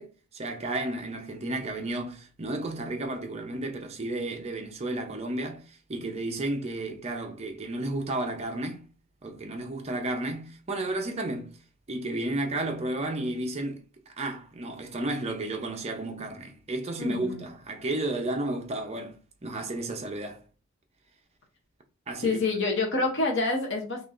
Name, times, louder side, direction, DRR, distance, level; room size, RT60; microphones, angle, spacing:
voice 1, 0.0-8.9 9.2-11.6 11.9-13.8 14.2-20.4 22.1-22.4, right 2 dB, 30° right, 0.6 m, -32 dB
voice 2, 17.0-17.4 22.2-24.0, left 3 dB, 55° left, 0.8 m, -27 dB
4.0 x 2.9 x 2.5 m
head